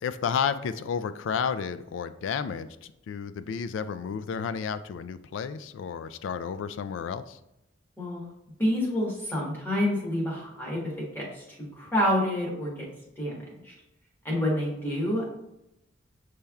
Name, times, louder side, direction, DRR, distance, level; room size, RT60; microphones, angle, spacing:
voice 1, 0.0-2.7 3.1-7.4, left 6 dB, 70° left, 13 dB, 0.3 m, -31 dB
voice 2, 8.6-11.4 11.7-12.9 13.2-13.7 14.2-15.3, left 1 dB, 10° left, -4 dB, 1.3 m, -28 dB
6.8 x 3.3 x 2.3 m, 0.88 s
head